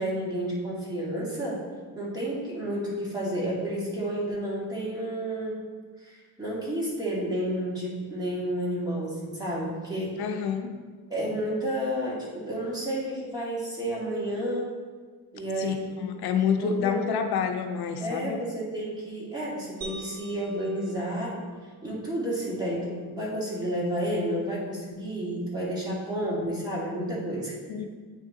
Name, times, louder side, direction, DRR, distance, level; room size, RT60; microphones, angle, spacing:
voice 1, 0.0-1.6 2.0-5.6 6.0-10.2 11.1-14.7 15.3-16.1 16.6-17.0 18.0-21.4 21.8-27.5, right 1 dB, 10° right, -7 dB, 1.9 m, -31 dB
voice 2, 10.2-10.7 15.6-18.4 27.7-27.9, left 7 dB, 80° left, 6 dB, 0.6 m, -28 dB
sound 1, 19.8-22.2, right 2 dB, 65° right, 1.0 m, -46 dB
8.9 x 3.8 x 3.7 m, 1.5 s
cardioid pair, 135°, 37 cm